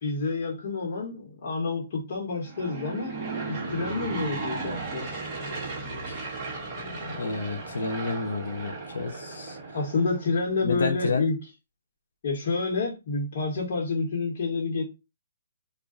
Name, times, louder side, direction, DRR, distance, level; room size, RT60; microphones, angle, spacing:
voice 1, 0.0-3.1 3.5-5.2 9.7-11.4 12.2-14.8, left 3 dB, 50° left, 0.9 m, -29 dB
Aircraft / Engine, 2.4-10.4, right 3 dB, 25° right, 0.9 m, -35 dB
voice 2, 6.8-9.6 10.6-11.3, left 3 dB, 80° left, 0.6 m, -30 dB
2.4 x 2.1 x 3.6 m
hypercardioid pair, 160°, 0 cm